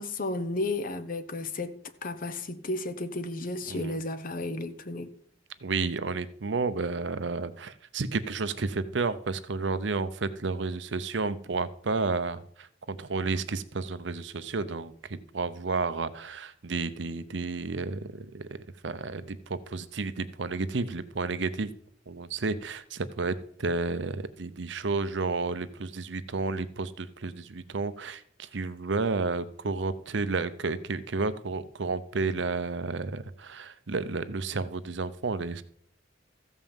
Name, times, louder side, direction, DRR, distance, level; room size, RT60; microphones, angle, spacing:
voice 1, 0.0-5.1, left 2 dB, 45° left, 0.9 m, -33 dB
voice 2, 3.7-4.0 5.6-21.7 22.1-35.6, right 3 dB, 70° right, 0.7 m, -31 dB
14.5 x 5.6 x 7.1 m
head